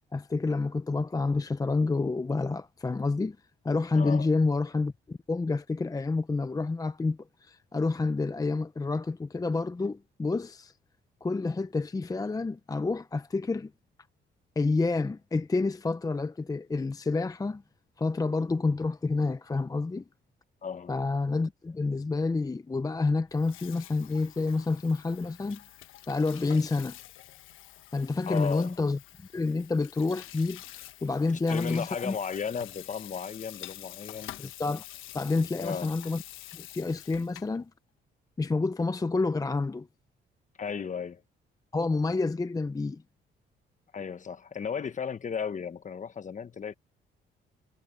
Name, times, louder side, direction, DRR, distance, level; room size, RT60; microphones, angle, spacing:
voice 1, 0.1-3.4 3.6-10.7 11.2-13.7 14.6-17.6 18.0-20.0 20.9-25.6 26.1-27.0 27.9-32.1 34.4-34.9 35.1-36.2 36.5-37.7 38.4-39.9 41.7-43.0, left 3 dB, 20° left, 0.7 m, -29 dB
voice 2, 3.9-4.3 20.6-20.9 28.3-28.7 31.5-34.4 35.6-35.9 40.6-41.2 43.9-46.7, left 6 dB, 40° left, 1.2 m, -35 dB
Water tap faucet / Sink (filling or washing), 23.3-37.6, left 14 dB, 90° left, 1.3 m, -47 dB
cardioid pair, 90°, 20 cm